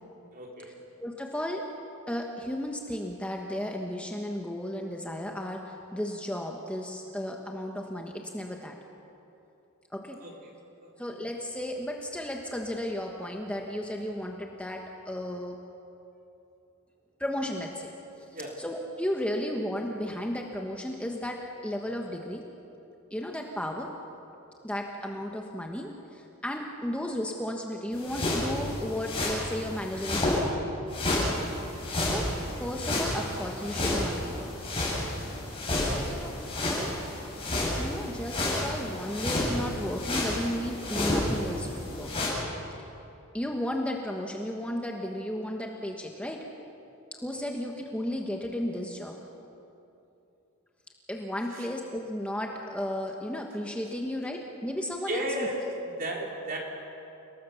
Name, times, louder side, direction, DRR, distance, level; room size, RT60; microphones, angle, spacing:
voice 1, 0.3-0.7 10.2-10.3 10.8-10.9 18.3-18.5 51.5-51.6 55.1-55.6 56.0-56.6, right 1 dB, 40° right, -1 dB, 4.4 m, -34 dB
voice 2, 1.0-1.7 2.1-8.7 9.9-10.2 11.0-15.6 17.2-17.9 18.2-18.3 18.6-22.4 23.1-23.9 24.6-30.4 31.9-32.3 32.6-34.5 35.9-36.4 36.6-36.9 37.8-42.1 43.3-46.4 47.1-49.2 51.1-55.5, left 1 dB, 5° left, 1 dB, 1.3 m, -34 dB
sound 1, 27.9-30.4 30.9-42.3, left 1 dB, 25° left, 8.0 m, -31 dB
30.0 x 19.0 x 7.1 m, 2.9 s
head